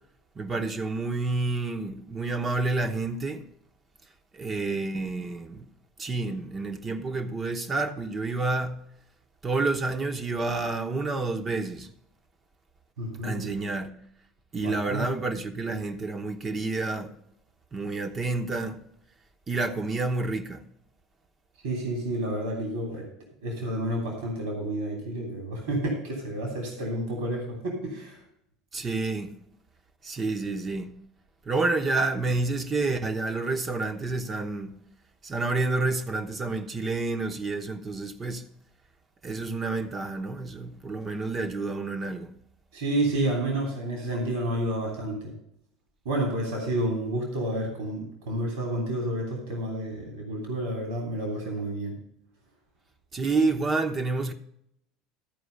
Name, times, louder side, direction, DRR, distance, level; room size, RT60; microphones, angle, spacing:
voice 1, 0.4-3.4 4.3-5.6 6.0-8.8 9.4-11.9 13.2-13.9 14.5-17.1 17.7-18.8 19.5-20.6 28.7-29.3 30.0-30.9 31.5-34.7 35.2-38.4 39.2-42.3 53.1-54.3, right 3 dB, 30° right, 1.0 m, -29 dB
voice 2, 13.0-13.5 14.6-15.0 21.6-23.0 23.4-28.2 42.7-45.3 46.0-51.9, right 1 dB, 75° right, 2.9 m, -30 dB
13.0 x 4.7 x 6.5 m
hypercardioid pair, 75°, 0 cm